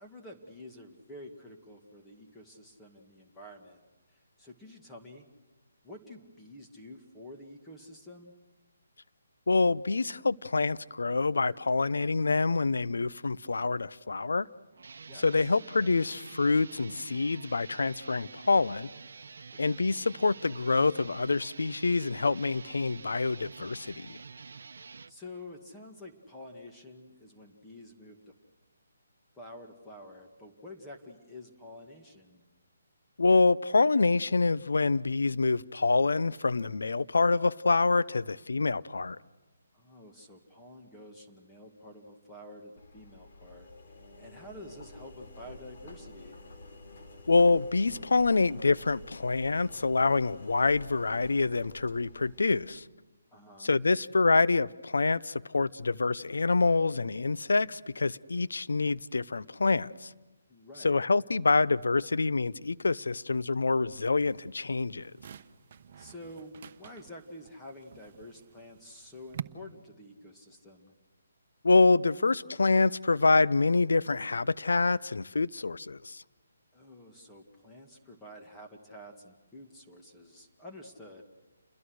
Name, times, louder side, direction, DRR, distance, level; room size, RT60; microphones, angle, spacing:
voice 1, 0.0-3.8 4.1-5.3 5.8-8.3 15.1-15.3 19.7-19.9 25.1-28.2 29.3-32.4 39.7-43.7 44.2-46.4 53.3-53.8 60.5-61.1 66.0-70.9 76.7-81.2, left 1 dB, 10° left, 0 dB, 2.1 m, -49 dB
voice 2, 9.5-14.5 15.2-18.9 19.6-24.2 33.2-39.2 47.3-52.8 53.6-60.1 60.8-65.1 71.6-76.2, left 3 dB, 80° left, 16 dB, 0.7 m, -26 dB
sound 1, 14.7-25.1, right 5 dB, 70° right, 0.9 m, -48 dB
Engine, 42.8-52.8, left 2 dB, 55° left, 4.0 m, -50 dB
sound 2, 64.2-69.4, right 8 dB, 45° right, 1.0 m, -47 dB
29.0 x 22.0 x 6.5 m, 1.2 s
hypercardioid pair, 155°, 0 cm